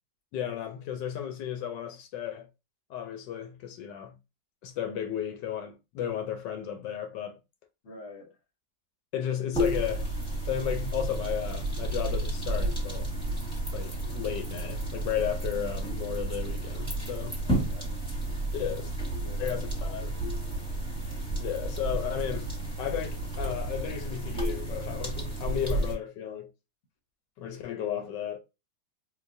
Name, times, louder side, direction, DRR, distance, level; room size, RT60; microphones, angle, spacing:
voice 1, 0.3-2.5 2.9-4.1 4.6-7.4 9.1-10.1 10.5-13.1 13.7-17.3 18.5-18.9 19.4-20.1 21.4-26.5 27.4-28.4, left 10 dB, 80° left, 1.2 m, -34 dB
voice 2, 7.8-8.4 17.4-18.0 19.2-20.7, left 2 dB, 50° left, 1.1 m, -49 dB
sound 1, 9.5-26.0, right 1 dB, 5° left, 1.1 m, -32 dB
3.9 x 2.6 x 2.6 m
omnidirectional pair, 2.0 m